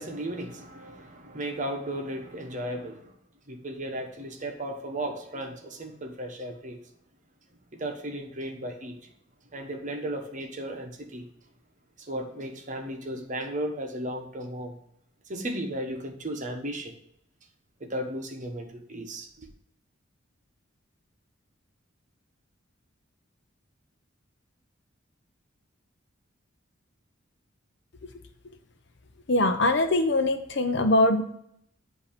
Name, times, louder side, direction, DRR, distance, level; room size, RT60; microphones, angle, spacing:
voice 1, 0.0-3.1 3.5-6.8 7.8-9.1 9.5-11.3 12.0-14.8 15.3-16.9 17.8-19.5, right 1 dB, 40° right, 4 dB, 0.9 m, -35 dB
voice 2, 29.3-31.2, left 2 dB, 60° left, 7 dB, 0.6 m, -22 dB
8.2 x 2.8 x 4.9 m, 0.71 s
head